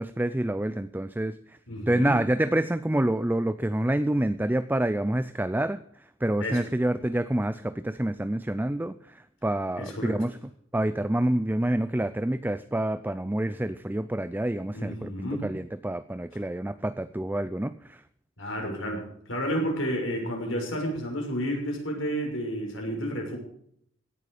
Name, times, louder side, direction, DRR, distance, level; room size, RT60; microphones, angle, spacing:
voice 1, 0.0-1.3 1.9-5.8 6.2-10.4 10.7-15.1 15.4-18.0, right 1 dB, 10° right, 13 dB, 0.5 m, -27 dB
voice 2, 1.7-2.1 6.4-6.7 9.8-10.2 14.7-15.4 18.4-23.4, equal, 70° left, 1 dB, 6.5 m, -31 dB
17.0 x 11.0 x 5.0 m, 0.68 s
head